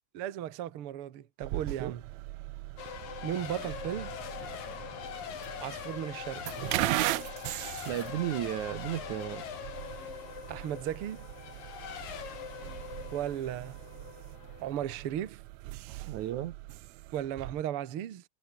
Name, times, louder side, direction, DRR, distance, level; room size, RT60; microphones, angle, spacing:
voice 1, 0.1-2.0 3.2-4.1 5.6-6.4 10.5-11.3 13.1-13.8 14.6-15.4 17.1-18.2, right 11 dB, 50° right, 1.8 m, -35 dB
sound 1, 1.4-17.6, right 18 dB, 90° right, 1.5 m, -39 dB
Race car auto racing / Accelerating revving vroom / Mechanisms, 2.8-15.3, left 8 dB, 75° left, 4.5 m, -42 dB
voice 2, 7.9-9.4 16.1-16.6, right 13 dB, 70° right, 2.2 m, -34 dB
omnidirectional pair, 4.0 m